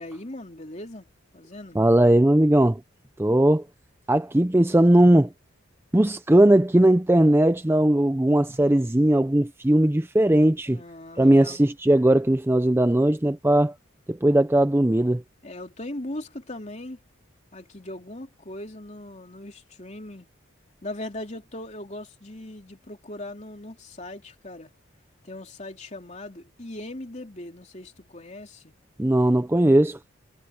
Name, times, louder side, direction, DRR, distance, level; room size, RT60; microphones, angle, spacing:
voice 1, 0.0-1.8 10.7-11.7 15.4-17.0 17.5-20.3 20.8-24.7 25.2-28.7, left 1 dB, 35° left, 3.2 m, -39 dB
voice 2, 1.8-2.8 3.2-3.6 4.1-5.3 5.9-10.8 11.2-13.7 14.1-15.2 29.0-30.0, right 1 dB, 10° right, 0.5 m, -19 dB
head